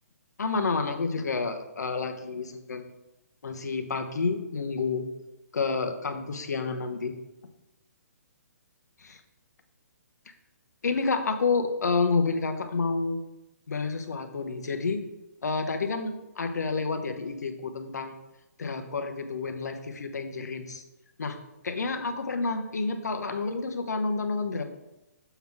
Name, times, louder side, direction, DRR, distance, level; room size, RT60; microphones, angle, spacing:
voice 1, 0.4-2.9 3.4-5.1 5.5-7.1 9.0-9.2 10.8-13.2 13.7-15.0 15.4-18.2 18.6-20.8 21.2-21.4 21.6-24.6, left 4 dB, 85° left, 6 dB, 1.0 m, -29 dB
7.0 x 3.9 x 6.0 m, 0.96 s
hypercardioid pair, 155°, 9 cm